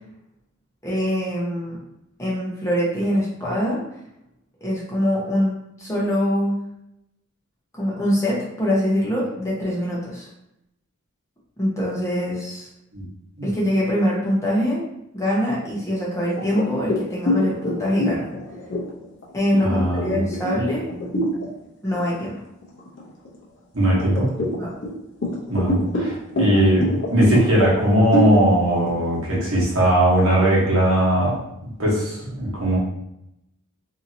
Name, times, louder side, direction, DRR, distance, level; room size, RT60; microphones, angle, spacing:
voice 1, 0.8-1.8 2.2-3.8 4.6-6.6 7.7-10.3 11.6-12.7 13.4-14.8 15.1-18.3 19.3-20.9 21.8-22.4 24.6-24.7, equal, 15° left, -6 dB, 0.7 m, -23 dB
sound 1, 16.4-21.5 21.9-22.2 22.6-23.4 24.0-30.7, equal, 55° left, 0.7 m, -26 dB
voice 2, 19.6-20.2 23.7-24.3 25.5-31.4 31.8-32.8, right 1 dB, 65° right, -5 dB, 1.1 m, -19 dB
2.7 x 2.7 x 2.7 m, 0.81 s
head